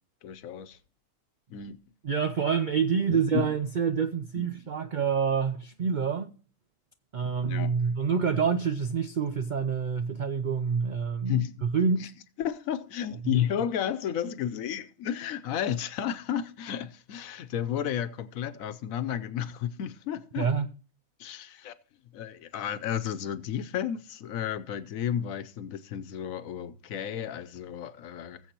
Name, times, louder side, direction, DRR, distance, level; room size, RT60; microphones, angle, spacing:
voice 1, 0.2-0.8 1.5-1.8 3.1-3.5 4.4-4.5 7.5-7.8 11.3-11.5 12.0-12.1 12.4-20.5 21.2-21.7 22.1-28.4, left 9 dB, 75° left, 1.1 m, -32 dB
voice 2, 2.0-6.3 7.1-12.1 13.3-13.4 20.4-20.7, right 6 dB, 90° right, 0.4 m, -27 dB
19.5 x 7.3 x 2.9 m
omnidirectional pair, 1.5 m